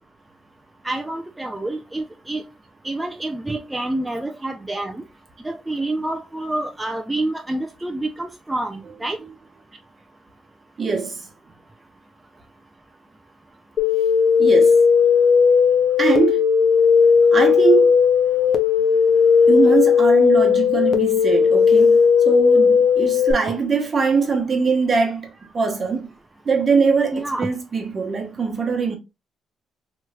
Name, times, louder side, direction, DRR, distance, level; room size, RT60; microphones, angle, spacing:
voice 1, 0.8-2.4 2.8-5.0 5.4-9.2 27.1-27.5, right 2 dB, 10° right, 0.4 m, -28 dB
voice 2, 10.8-11.3 14.4-14.8 16.0-16.4 17.3-17.9 19.5-22.0 22.2-26.1 26.4-29.0, right 5 dB, 40° right, 1.0 m, -21 dB
sound 1, 13.8-23.3, left 6 dB, 65° left, 0.6 m, -16 dB
3.1 x 3.0 x 2.3 m
cardioid pair, 90°, 0 cm